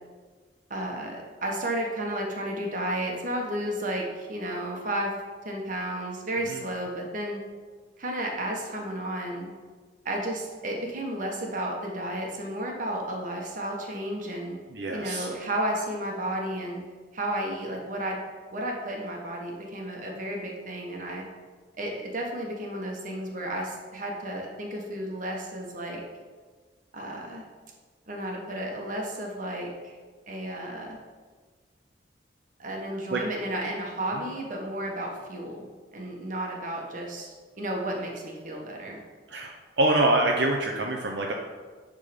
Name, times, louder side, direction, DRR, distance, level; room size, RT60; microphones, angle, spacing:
voice 1, 0.7-5.1 5.4-7.4 8.0-9.5 10.0-14.6 14.9-16.8 17.1-18.2 18.5-21.2 21.8-26.0 26.9-27.4 28.1-29.9 30.3-31.0 32.6-35.7 35.9-39.0, right 1 dB, 45° right, 0 dB, 1.4 m, -32 dB
voice 2, 14.7-15.3 33.1-33.2 34.1-34.2 39.3-39.5 39.8-41.3, right 2 dB, 75° right, 0 dB, 0.8 m, -25 dB
10.0 x 3.8 x 5.2 m, 1.4 s
head